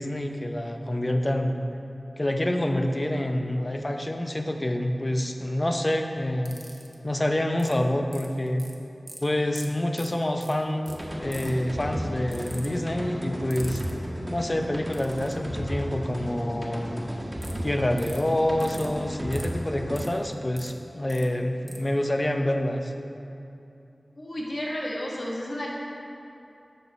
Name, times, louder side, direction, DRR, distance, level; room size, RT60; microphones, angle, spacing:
voice 1, 0.0-1.6 2.2-6.6 7.0-8.6 9.2-13.8 14.3-17.1 17.6-22.9, left 1 dB, 35° left, 5 dB, 0.6 m, -27 dB
sound 1, 6.5-6.9 7.6-7.7 8.1-8.7 9.1-9.2 9.6-9.7 9.9-10.1 10.4-10.5 10.9-11.0 11.3-11.6 12.3-12.7 13.5-13.9 14.9-15.3 17.4-17.5 18.0-18.2 18.6-18.9 19.3-19.5 20.0-20.7 21.1-21.2 21.7-21.8, right 1 dB, 30° right, 1.1 m, -43 dB
sound 2, 10.9-20.1, equal, 10° right, 1.5 m, -34 dB
voice 2, 24.2-25.7, left 1 dB, 60° left, -4 dB, 1.4 m, -32 dB
8.0 x 6.1 x 4.1 m, 2.8 s
cardioid pair, 40°, 0 cm